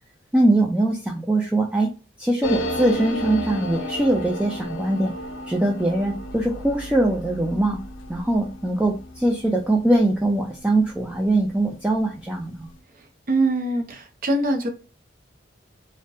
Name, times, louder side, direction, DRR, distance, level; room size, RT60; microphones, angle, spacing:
voice 1, 0.3-1.9 2.2-5.1 5.5-7.8 8.1-12.7, right 1 dB, 5° right, -1 dB, 0.3 m, -22 dB
sound 1, 2.4-11.6 11.9-12.0 12.2-12.7, equal, 90° left, 0.4 m, -33 dB
voice 2, 13.3-14.7, right 2 dB, 50° right, 4 dB, 0.6 m, -23 dB
2.6 x 2.1 x 2.2 m, 0.34 s
head